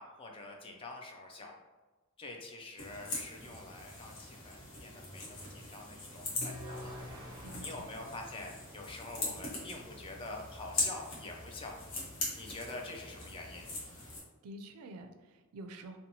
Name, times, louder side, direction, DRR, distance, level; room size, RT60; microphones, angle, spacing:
voice 1, 0.0-1.5 2.2-6.9 7.3-11.8 12.4-13.7, left 2 dB, 25° left, 1 dB, 0.3 m, -46 dB
sound 1, 2.8-14.2, left 2 dB, 60° left, 0.9 m, -41 dB
sound 2, 6.4-9.6, left 1 dB, 20° right, 0.7 m, -48 dB
voice 2, 7.4-7.9 14.4-16.0, right 1 dB, 85° right, 6 dB, 0.4 m, -48 dB
2.8 x 2.2 x 2.7 m, 1.3 s
head